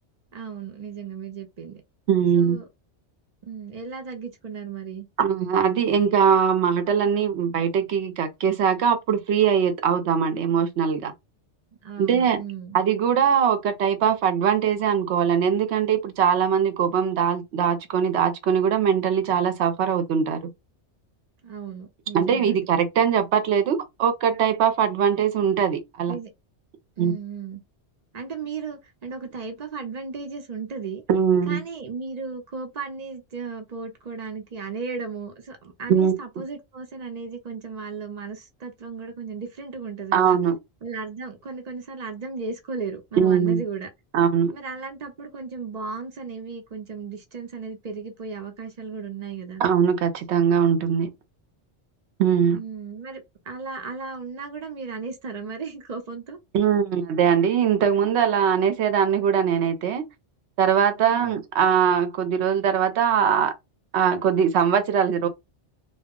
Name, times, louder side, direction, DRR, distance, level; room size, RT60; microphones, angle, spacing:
voice 1, 0.3-1.8 2.3-2.6 3.4-5.1 11.8-12.8 21.4-22.6 26.1-26.3 27.0-27.6 28.1-31.0 31.5-40.4 40.8-43.9 44.5-49.6 52.5-56.4 61.0-61.4, right 5 dB, 45° right, 0.6 m, -35 dB
voice 2, 2.1-2.6 5.2-11.1 12.0-12.4 12.7-20.4 22.1-26.2 27.0-27.1 31.1-31.6 35.9-36.1 40.1-40.6 43.2-43.6 44.1-44.5 49.6-51.1 52.2-52.6 56.5-60.1 60.6-63.5 63.9-65.3, right 7 dB, 70° right, 0.8 m, -21 dB
2.2 x 2.1 x 3.6 m
omnidirectional pair, 1.2 m